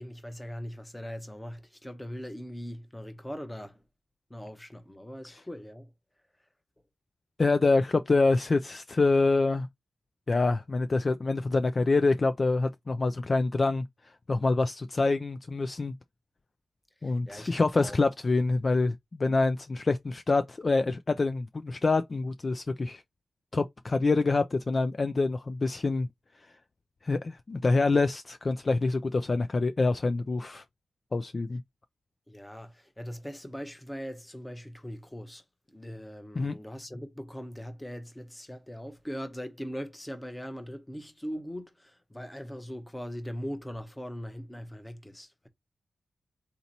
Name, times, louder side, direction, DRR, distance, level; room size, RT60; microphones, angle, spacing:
voice 1, 0.0-3.8 4.3-5.9 17.0-18.0 32.3-35.4 35.7-45.5, equal, 10° left, 0.8 m, -40 dB
voice 2, 7.4-9.7 10.3-13.8 14.3-15.9 17.0-23.0 23.5-26.1 27.0-30.6 31.1-31.6 36.4-36.5, left 3 dB, 35° left, 0.3 m, -26 dB
4.0 x 2.9 x 4.0 m
wide cardioid pair, 145°, 0 cm